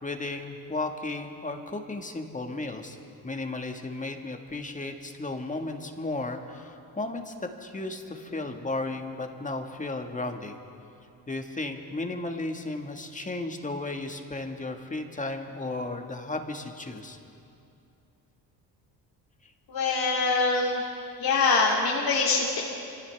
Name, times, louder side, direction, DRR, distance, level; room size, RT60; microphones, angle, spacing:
voice 1, 0.0-3.0 3.2-10.6 11.3-17.2, left 2 dB, 20° left, 4 dB, 1.7 m, -34 dB
voice 2, 19.7-20.9 21.2-22.6, left 4 dB, 55° left, -5 dB, 2.5 m, -24 dB
25.5 x 16.0 x 3.5 m, 2.6 s
supercardioid pair, 75°, 41 cm